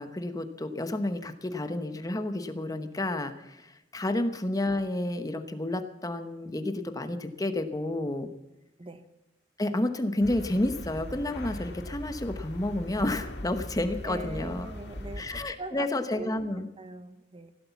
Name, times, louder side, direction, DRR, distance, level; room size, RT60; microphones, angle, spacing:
voice 1, 0.0-8.3 9.6-14.7 15.2-16.7, left 1 dB, 20° left, 8 dB, 1.0 m, -30 dB
sound 1, 10.2-15.4, left 1 dB, 60° left, 1.8 m, -40 dB
voice 2, 14.0-16.3 16.8-17.5, right 2 dB, 30° right, 11 dB, 0.9 m, -42 dB
16.5 x 12.0 x 7.1 m, 0.93 s
head